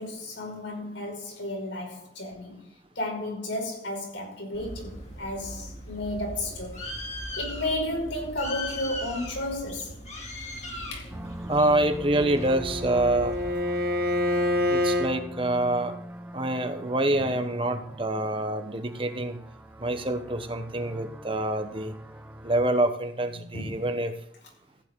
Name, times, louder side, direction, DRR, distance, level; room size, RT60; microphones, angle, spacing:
voice 1, 0.0-2.6 3.0-6.9 7.4-9.9 10.9-11.1 23.2-23.9, left 1 dB, 85° left, 5.6 m, -33 dB
Bird, 4.5-13.5, left 1 dB, 35° left, 2.6 m, -39 dB
sound 1, 11.1-22.6, equal, 10° right, 0.8 m, -42 dB
voice 2, 11.4-13.3 14.7-15.9 16.3-19.4 19.8-21.9 22.4-24.1, right 1 dB, 30° right, 1.1 m, -26 dB
Bowed string instrument, 12.0-15.1, left 1 dB, 50° right, 1.7 m, -27 dB
15.0 x 9.9 x 3.8 m
head